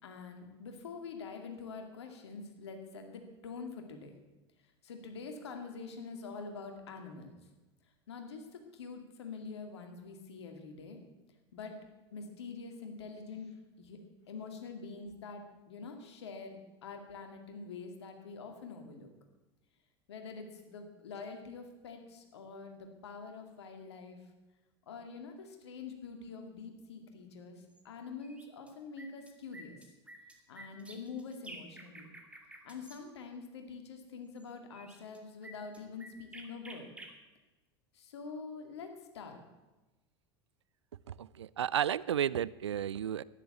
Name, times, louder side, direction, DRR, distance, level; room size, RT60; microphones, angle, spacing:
voice 1, 0.0-4.1 4.8-7.4 8.1-8.4 8.7-11.0 11.5-11.7 12.1-13.5 13.8-14.0 14.3-19.1 20.1-24.2 24.9-27.6 27.8-29.8 30.5-32.1 32.6-36.9 38.0-38.9 39.1-39.4, left 4 dB, 75° left, 5 dB, 2.3 m, -45 dB
sound 1, 27.7-27.8 28.2-28.7 29.0-33.0 34.4-34.5 34.7-37.1, right 1 dB, 10° right, 2.3 m, -51 dB
voice 2, 41.1-43.2, right 10 dB, 80° right, 20 dB, 0.4 m, -33 dB
11.5 x 10.0 x 8.4 m, 1.1 s
hypercardioid pair, 80°, 14 cm